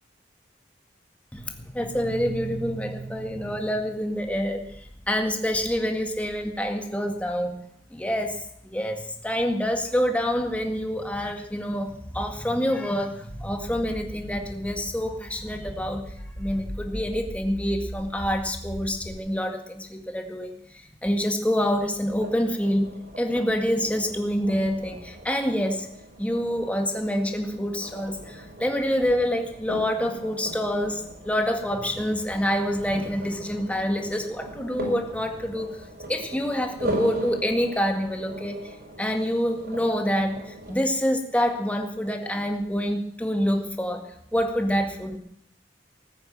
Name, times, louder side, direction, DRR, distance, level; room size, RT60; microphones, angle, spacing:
voice 1, 1.3-7.6 7.9-25.9 26.2-35.7 36.1-38.7 39.0-45.2, equal, 10° left, 4 dB, 1.9 m, -27 dB
sound 1, 13.3-19.2, equal, 65° left, 2.6 m, -39 dB
sound 2, 21.6-40.8, right 1 dB, 60° right, 5.6 m, -39 dB
18.5 x 9.7 x 7.7 m, 0.69 s
head